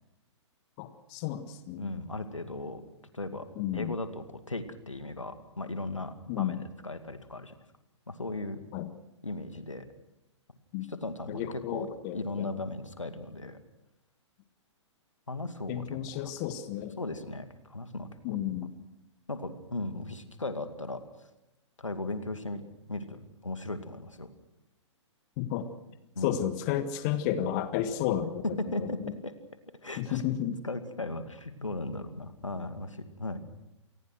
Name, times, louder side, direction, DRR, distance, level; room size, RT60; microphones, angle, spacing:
voice 1, 0.8-1.9 3.6-3.9 6.3-6.6 8.7-8.9 10.7-10.9 11.3-12.5 15.7-17.0 18.2-18.7 25.4-25.7 26.2-28.4 28.8-29.1 30.0-30.6, left 11 dB, 35° left, 10 dB, 1.6 m, -32 dB
voice 2, 1.8-2.8 3.1-3.5 3.7-7.6 8.1-8.6 9.2-9.8 10.9-13.6 15.3-16.3 17.0-18.4 19.3-21.0 21.8-24.3 26.1-26.4 28.6-29.3 29.8-30.2 30.6-33.4, left 2 dB, 85° left, 9 dB, 2.2 m, -37 dB
27.5 x 20.0 x 6.2 m, 0.92 s
figure-of-eight pair, 115°, 16 cm